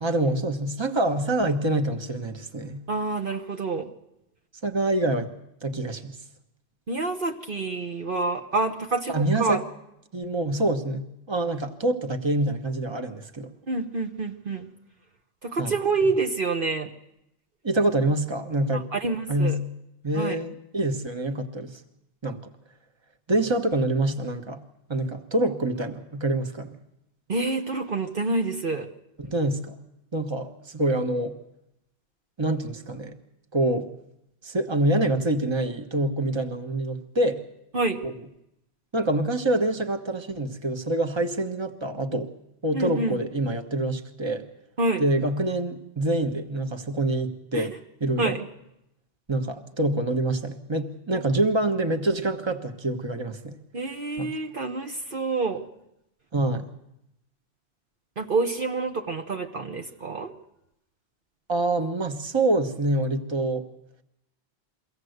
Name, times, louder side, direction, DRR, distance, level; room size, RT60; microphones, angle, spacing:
voice 1, 0.0-2.8 4.6-5.3 5.6-6.2 9.1-9.6 10.1-13.5 15.6-15.7 17.6-18.8 19.3-19.6 20.0-21.8 22.2-22.4 23.3-24.6 24.9-26.8 29.2-29.7 30.1-31.4 32.4-33.1 33.5-33.9 34.4-37.4 38.0-38.1 38.9-42.3 42.6-44.5 45.0-47.7 48.0-48.4 49.3-53.6 54.2-54.3 56.3-56.7 61.5-63.7, right 2 dB, 25° right, 6 dB, 1.3 m, -26 dB
voice 2, 2.9-3.9 6.9-9.6 13.7-14.7 15.4-16.9 18.7-19.6 20.1-20.4 27.3-28.9 37.7-38.0 42.7-43.2 44.8-45.0 47.5-47.7 48.2-48.4 53.7-55.6 58.2-60.3, right 3 dB, 55° right, 4 dB, 1.3 m, -27 dB
23.5 x 16.5 x 8.0 m, 0.84 s
omnidirectional pair, 1.1 m